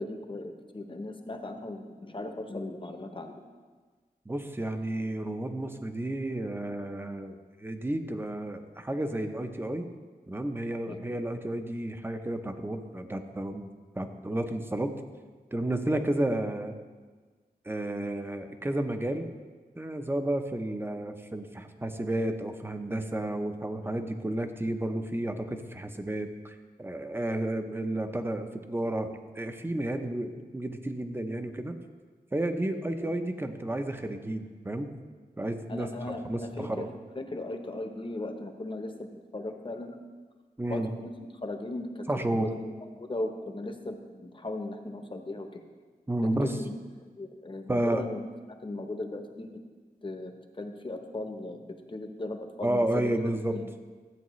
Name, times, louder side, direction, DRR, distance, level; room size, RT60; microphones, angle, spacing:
voice 1, 0.0-3.3 10.9-11.0 33.0-33.2 35.7-36.9 37.2-40.0 40.7-41.1 41.4-45.6 46.4-46.7 47.2-48.2 48.6-49.5 50.0-50.3 50.6-51.6 51.9-53.1 53.5-53.6, left 2 dB, 35° left, 5 dB, 0.8 m, -37 dB
voice 2, 4.3-9.9 10.3-13.7 14.0-14.9 15.5-16.7 17.6-19.3 19.8-31.8 32.3-34.9 35.4-35.9 36.2-36.9 40.6-40.9 42.1-42.5 46.1-46.5 47.7-48.1 52.6-53.6, right 1 dB, 15° right, 7 dB, 0.6 m, -31 dB
13.5 x 8.3 x 3.1 m, 1.4 s
wide cardioid pair, 110°, 16 cm